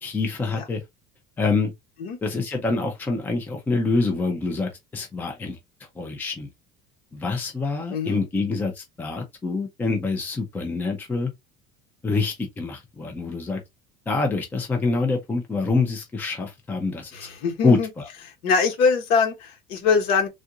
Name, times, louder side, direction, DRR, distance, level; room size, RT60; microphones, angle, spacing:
voice 1, 0.0-0.8 1.4-1.7 2.2-5.6 6.0-6.5 7.1-11.3 12.0-13.6 14.1-17.1 17.6-18.1, left 3 dB, 10° left, 0.5 m, -26 dB
voice 2, 7.9-8.5 17.1-17.9 18.4-20.3, left 5 dB, 55° left, 1.2 m, -23 dB
3.6 x 2.5 x 2.7 m
cardioid pair, 175°, 18 cm